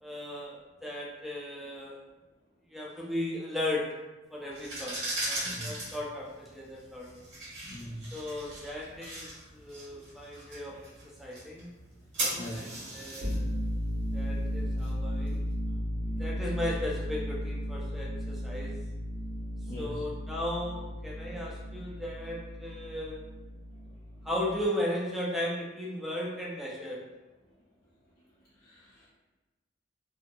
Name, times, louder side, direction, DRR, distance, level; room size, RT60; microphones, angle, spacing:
voice 1, 0.0-2.0 2.7-3.8 4.3-5.0 5.3-7.1 8.1-10.9 11.2-11.7 12.5-13.6 14.1-15.5 16.2-18.7 19.8-23.2 24.2-27.0, left 1 dB, ahead, -4 dB, 0.4 m, -36 dB
sound 1, 4.5-15.3, right 1 dB, 65° right, 1.2 m, -39 dB
voice 2, 5.4-5.7 7.6-8.1 12.3-12.7 19.7-19.9 28.6-29.1, equal, 50° left, -9 dB, 0.5 m, -41 dB
sound 2, 13.2-24.6, equal, 85° right, 1.4 m, -35 dB
2.7 x 2.7 x 2.2 m, 1.1 s
head